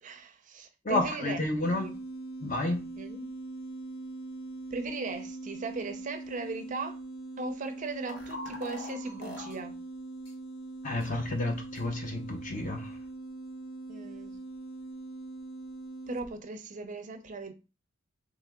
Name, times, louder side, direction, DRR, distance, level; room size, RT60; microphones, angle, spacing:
voice 1, 0.0-1.4 1.7-2.0 3.0-3.3 4.7-7.0 7.4-9.8 13.9-14.4 16.1-17.5, right 3 dB, 40° right, 0.5 m, -38 dB
voice 2, 0.8-1.8 2.4-2.8 10.8-12.9, left 1 dB, 40° left, 0.9 m, -30 dB
sound 1, 1.6-16.4, right 2 dB, 80° left, 0.5 m, -42 dB
sound 2, 8.0-9.6 10.2-10.3 11.0-11.1 11.7-11.8, left 2 dB, 60° left, 1.1 m, -42 dB
3.7 x 3.1 x 3.5 m
head